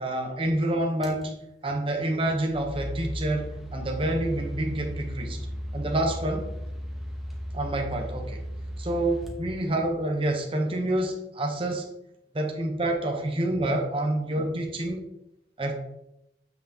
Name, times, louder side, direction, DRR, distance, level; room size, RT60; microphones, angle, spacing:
voice 1, 0.0-5.4 5.7-6.5 7.5-8.4 8.8-11.9 12.3-15.1 15.6-15.7, right 1 dB, 30° right, 2 dB, 0.9 m, -28 dB
sound 1, 1.0-1.2 2.1-10.1, equal, ahead, 0.9 m, -36 dB
7.4 x 5.9 x 2.8 m, 0.84 s
head